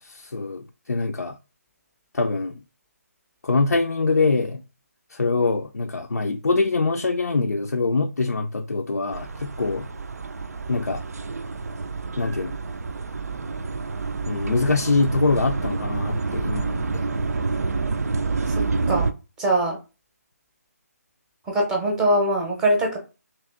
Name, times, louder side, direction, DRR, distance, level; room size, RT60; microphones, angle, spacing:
voice 1, 0.0-1.4 2.1-2.6 3.4-4.6 5.1-9.9 10.7-11.0 12.2-12.6 14.3-17.1, left 3 dB, 80° left, 0.4 m, -24 dB
sound 1, 9.1-19.1, right 4 dB, 70° right, 0.4 m, -28 dB
voice 2, 18.5-19.1 19.4-19.8 21.5-23.0, right 1 dB, 5° right, 0.7 m, -22 dB
2.9 x 2.8 x 3.4 m
figure-of-eight pair, 155°, 9 cm